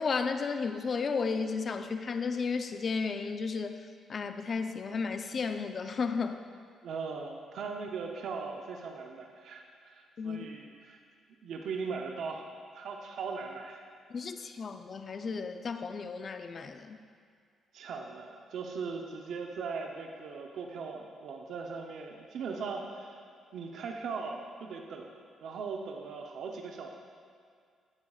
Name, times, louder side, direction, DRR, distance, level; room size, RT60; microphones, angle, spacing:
voice 1, 0.0-3.8 4.1-6.4 10.2-10.5 14.1-17.0, left 5 dB, 45° left, 8 dB, 0.6 m, -33 dB
voice 2, 6.8-11.0 11.4-12.5 12.7-13.8 17.7-23.3 23.5-25.1 25.4-26.9, right 5 dB, 70° right, 2 dB, 0.8 m, -39 dB
15.0 x 9.7 x 2.4 m, 2.2 s
cardioid pair, 90°, 0 cm